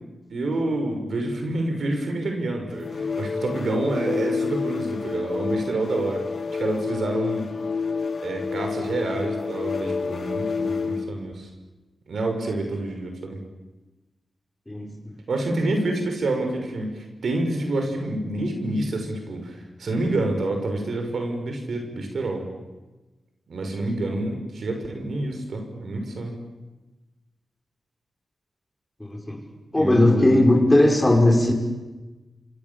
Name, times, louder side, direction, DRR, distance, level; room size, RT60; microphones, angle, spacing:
voice 1, 0.3-6.2 6.5-7.5 8.2-11.5 12.1-13.4 15.3-22.5 23.5-26.4 29.7-30.6, right 2 dB, 75° right, 4 dB, 6.1 m, -28 dB
sound 1, 2.7-11.1, left 5 dB, 60° left, 1.7 m, -29 dB
voice 2, 29.0-29.4 29.7-31.5, left 1 dB, 15° left, 3 dB, 5.4 m, -18 dB
28.0 x 25.5 x 7.3 m, 1.1 s
cardioid pair, 65°, 0 cm